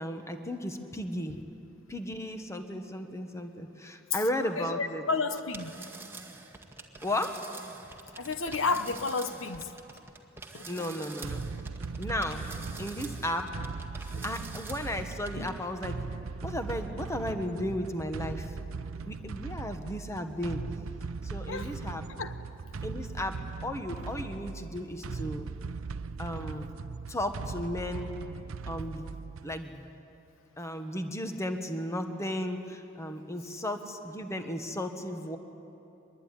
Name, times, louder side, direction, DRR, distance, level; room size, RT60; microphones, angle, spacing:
voice 1, 0.0-1.4 1.9-5.1 7.0-7.4 10.7-11.4 12.0-12.4 12.8-13.5 14.2-16.0 16.4-18.5 19.1-20.6 21.2-22.0 22.8-25.5 26.2-26.7 27.1-28.1 28.7-29.1 29.4-29.9 30.6-35.4, left 1 dB, 15° left, 6 dB, 1.4 m, -34 dB
voice 2, 4.4-5.7 8.2-9.7 10.5-10.6 14.1-14.3 15.3-15.5 21.5-21.7 22.2-22.3, left 4 dB, 70° left, 9 dB, 1.1 m, -32 dB
sound 1, 5.3-15.6, right 3 dB, 10° right, 1.7 m, -46 dB
sound 2, 11.2-29.6, right 4 dB, 80° right, 0.6 m, -39 dB
24.0 x 21.5 x 10.0 m, 3.0 s
head